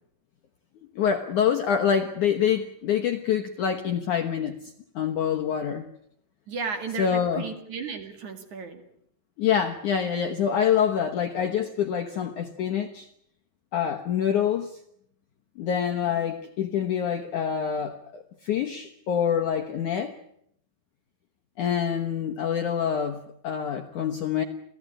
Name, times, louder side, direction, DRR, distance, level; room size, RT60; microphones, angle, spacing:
voice 1, 0.8-4.5 5.0-5.9 7.0-7.4 9.4-13.1 13.7-14.7 15.6-20.1 21.6-24.4, left 8 dB, 65° left, 5 dB, 2.1 m, -26 dB
voice 2, 6.5-8.8, right 5 dB, 50° right, 7 dB, 3.3 m, -34 dB
27.5 x 16.5 x 10.0 m, 0.71 s
omnidirectional pair, 4.9 m